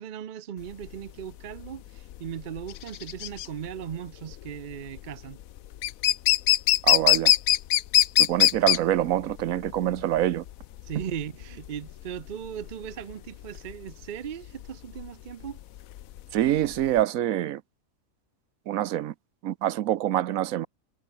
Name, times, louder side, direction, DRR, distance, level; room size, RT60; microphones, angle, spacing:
voice 1, 0.0-5.4 10.8-15.6, right 9 dB, 50° right, 0.6 m, -38 dB
sound 1, 0.7-17.0, left 13 dB, 85° left, 1.1 m, -24 dB
voice 2, 6.8-7.3 8.2-10.4 16.3-17.6 18.7-19.1 19.4-20.7, right 12 dB, 85° right, 1.1 m, -25 dB
omnidirectional pair, 1.4 m